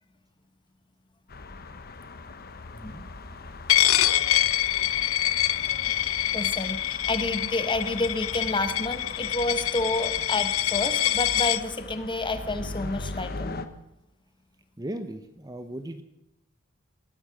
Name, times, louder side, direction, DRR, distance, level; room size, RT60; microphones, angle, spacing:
sound 1, 1.3-13.7, left 3 dB, 50° left, 1.0 m, -40 dB
voice 1, 2.7-3.1 14.8-16.0, right 1 dB, 20° right, 9 dB, 0.8 m, -37 dB
Coin (dropping), 3.7-11.6, left 13 dB, 85° left, 0.7 m, -25 dB
voice 2, 5.9-13.5, left 2 dB, 25° left, 9 dB, 1.3 m, -30 dB
19.0 x 11.5 x 6.3 m, 0.86 s
head